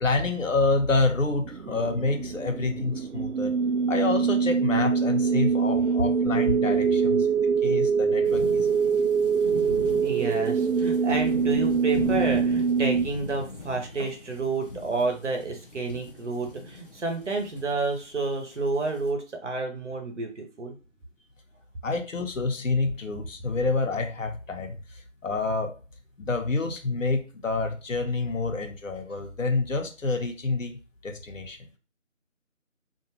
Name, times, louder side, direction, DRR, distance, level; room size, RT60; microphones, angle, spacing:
voice 1, 0.0-3.5 3.9-8.7 21.8-24.8 25.2-25.7 26.2-31.6, left 3 dB, 75° left, 5 dB, 0.8 m, -28 dB
sound 1, 1.4-13.1, right 6 dB, 80° right, 0.5 m, -24 dB
sound 2, 8.2-19.1, left 2 dB, 45° left, 0.5 m, -40 dB
voice 2, 10.0-20.7, right 3 dB, 60° right, 3 dB, 0.9 m, -30 dB
2.6 x 2.3 x 2.9 m, 0.35 s
figure-of-eight pair, 160°, 39 cm